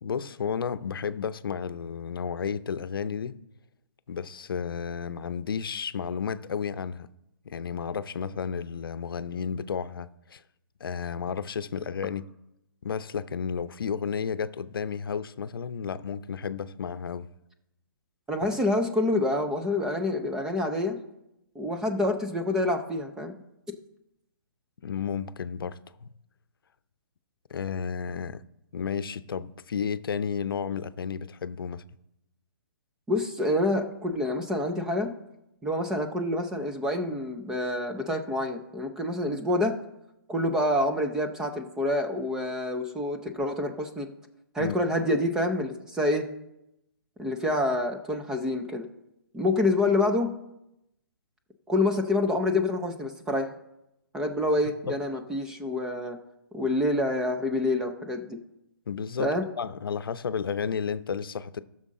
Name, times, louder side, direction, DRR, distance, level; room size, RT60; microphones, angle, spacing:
voice 1, 0.0-3.4 4.1-7.1 7.4-10.4 10.8-12.2 12.8-17.3 24.8-26.1 27.5-28.4 28.7-31.8 44.6-44.8 54.9-55.0 58.9-59.3 59.6-61.6, left 6 dB, 80° left, 0.6 m, -32 dB
voice 2, 18.3-21.0 21.6-23.3 33.1-35.1 35.6-39.8 40.3-44.1 44.5-46.3 47.2-48.9 49.3-50.3 51.7-53.5 54.1-56.2 56.5-58.4 59.2-59.4, left 1 dB, 5° right, 0.4 m, -27 dB
14.5 x 6.4 x 3.7 m
hypercardioid pair, 165°, 12 cm